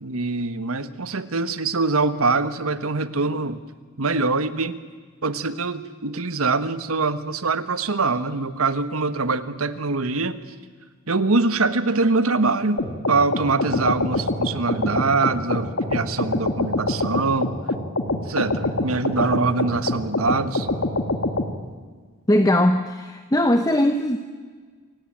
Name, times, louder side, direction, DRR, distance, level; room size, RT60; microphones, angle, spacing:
voice 1, 0.0-3.6 4.0-4.8 5.2-10.4 11.1-17.5 18.1-20.7, right 3 dB, 80° right, 12 dB, 1.2 m, -23 dB
sound 1, 12.8-21.5, left 2 dB, 65° left, 1.9 m, -25 dB
voice 2, 22.3-24.2, left 1 dB, 15° left, 8 dB, 0.8 m, -19 dB
27.5 x 16.5 x 8.9 m, 1.5 s
head